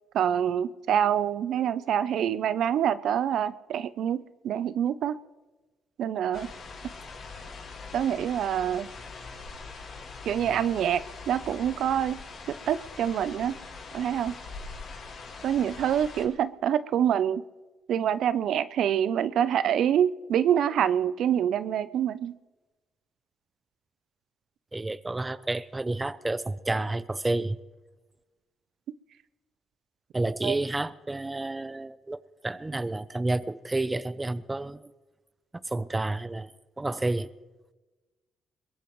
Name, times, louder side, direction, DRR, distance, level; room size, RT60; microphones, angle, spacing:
voice 1, 0.1-5.2 6.0-6.5 7.9-8.9 10.2-12.2 12.5-13.6 13.9-14.4 15.4-17.4 17.9-22.4 30.4-30.6, right 9 dB, 75° right, 0.5 m, -26 dB
sound 1, 6.3-16.2, left 4 dB, 65° left, 5.9 m, -42 dB
voice 2, 24.7-27.6 30.1-34.8 35.5-37.3, right 2 dB, 15° right, 0.6 m, -30 dB
22.0 x 21.0 x 3.1 m
cardioid pair, 90°, 0 cm